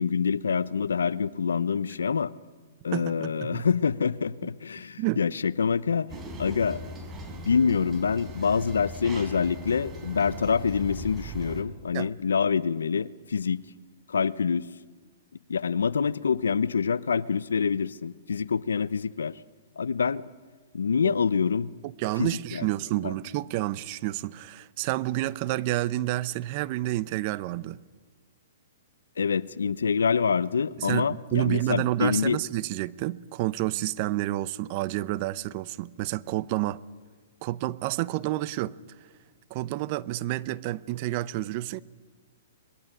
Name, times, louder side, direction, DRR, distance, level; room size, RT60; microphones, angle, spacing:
voice 1, 0.0-2.3 2.8-6.1 6.4-6.8 7.4-13.6 14.1-14.7 15.5-19.4 19.8-20.2 20.7-21.7 22.2-22.7 23.0-23.1 29.2-32.4, left 6 dB, 85° left, 0.8 m, -26 dB
voice 2, 2.9-3.7 5.0-5.2 11.9-12.1 21.0-21.2 21.8-27.8 30.8-36.8 37.4-38.7 39.5-41.8, right 16 dB, 40° right, 0.8 m, -29 dB
sound 1, 6.1-11.6, right 1 dB, 20° right, 4.2 m, -40 dB
25.0 x 20.5 x 9.9 m
hypercardioid pair, 135°, 0 cm